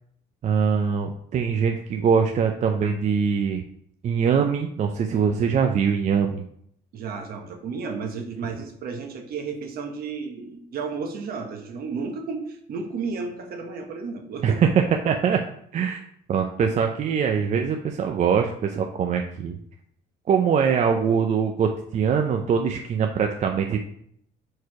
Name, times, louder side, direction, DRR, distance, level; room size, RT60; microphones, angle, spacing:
voice 1, 0.4-3.6 4.0-6.4 14.4-15.4 15.7-16.0 16.3-19.6 20.3-23.8, right 6 dB, 45° right, 4 dB, 0.5 m, -22 dB
voice 2, 6.9-14.6, right 4 dB, 65° right, 4 dB, 1.2 m, -33 dB
4.6 x 4.6 x 4.7 m, 0.68 s
cardioid pair, 110°, 17 cm